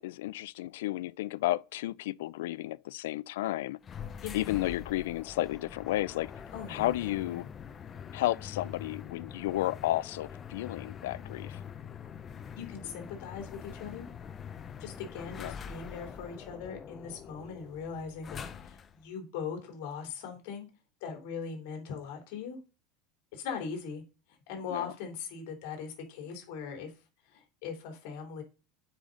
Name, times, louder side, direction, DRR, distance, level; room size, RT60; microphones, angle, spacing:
voice 1, 0.0-3.8 4.3-6.3 6.7-7.5 8.1-11.6 15.4-15.5 24.7-24.9, left 16 dB, 85° left, 0.3 m, -32 dB
sound 1, 3.8-19.0, left 7 dB, 25° left, 0.6 m, -44 dB
voice 2, 6.5-6.9 12.6-14.1 14.8-20.7 21.0-22.6 23.3-24.0 24.5-26.9 27.3-28.4, left 6 dB, 65° left, 3.0 m, -40 dB
8.9 x 5.0 x 3.8 m
supercardioid pair, 145°, 0 cm